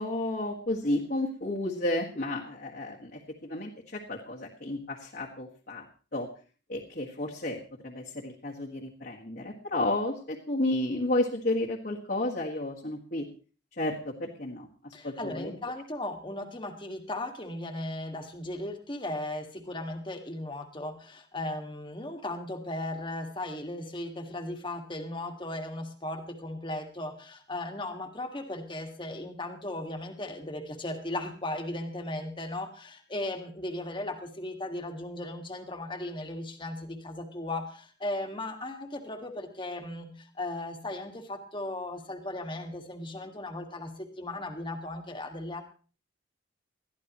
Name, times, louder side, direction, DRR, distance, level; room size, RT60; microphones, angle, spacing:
voice 1, 0.0-5.9 6.1-6.3 6.7-13.3 13.7-15.6, left 1 dB, 50° left, -3 dB, 1.8 m, -32 dB
voice 2, 14.9-45.6, left 1 dB, 25° left, 5 dB, 1.9 m, -37 dB
21.0 x 14.0 x 3.1 m, 0.37 s
head